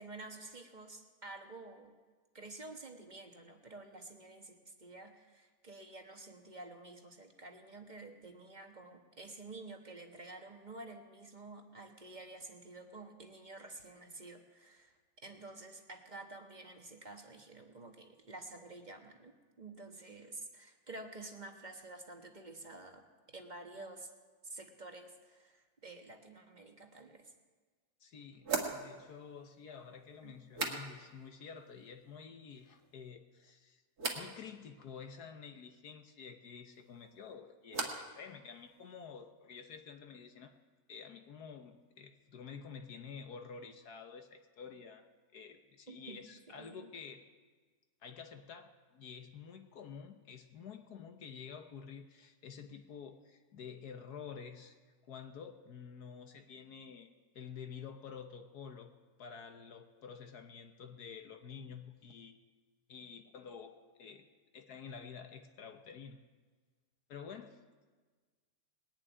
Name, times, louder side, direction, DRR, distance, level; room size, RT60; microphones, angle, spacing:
voice 1, 0.0-1.9 2.3-24.1 24.4-27.3 30.2-30.3 45.9-46.2 46.5-46.9, right 2 dB, 30° right, 4 dB, 1.2 m, -50 dB
sound 1, 27.2-27.3 28.4-31.3 31.6-32.2 32.5-33.1 34.0-34.3 36.7-38.2 38.5-39.1, right 4 dB, 60° right, 2.3 m, -42 dB
voice 2, 28.0-33.8 34.1-40.5 40.9-45.1 45.3-47.2 48.0-54.8 55.0-57.1 57.3-58.9 59.2-62.4 62.9-63.7 64.0-64.2 64.5-66.2 67.1-67.6, left 6 dB, 70° left, 6 dB, 1.5 m, -49 dB
20.5 x 7.5 x 9.3 m, 1.4 s
omnidirectional pair, 1.8 m